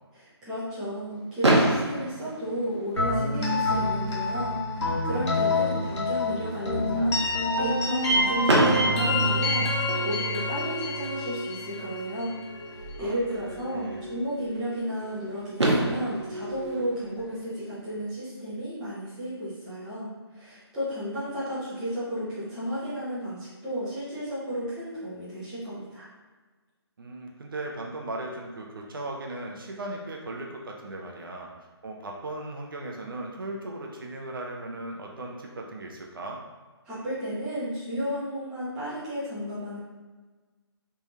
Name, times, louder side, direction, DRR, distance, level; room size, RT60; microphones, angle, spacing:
voice 1, 0.1-12.4 12.7-26.1 36.8-39.8, equal, 5° right, -13 dB, 0.5 m, -33 dB
Fireworks, 1.4-3.4 4.3-4.4 4.5-4.8 5.1-5.2 8.5-10.3 12.0-12.1 15.1-15.2 15.6-17.9, right 1 dB, 85° right, 0.8 m, -26 dB
sound 1, 3.0-12.7, left 1 dB, 85° left, 1.3 m, -27 dB
sound 2, 9.5-17.4, right 1 dB, 40° left, 0.8 m, -44 dB
voice 2, 13.5-14.1 27.0-31.5 31.8-36.4, right 2 dB, 55° right, 0 dB, 0.7 m, -37 dB
3.4 x 3.2 x 2.8 m, 1.3 s
hypercardioid pair, 165°, 14 cm